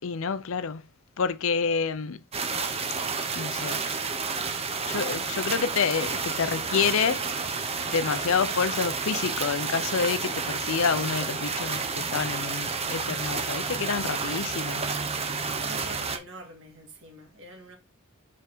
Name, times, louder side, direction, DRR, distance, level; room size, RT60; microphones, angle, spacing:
voice 1, 0.0-0.8 1.2-2.2 3.4-3.8 4.8-7.3 7.8-14.8, left 6 dB, 65° left, 0.5 m, -28 dB
sound 1, 2.3-16.2, right 4 dB, 30° right, 0.8 m, -30 dB
voice 2, 15.6-17.8, right 1 dB, 60° right, 2.1 m, -44 dB
6.8 x 4.7 x 3.6 m
head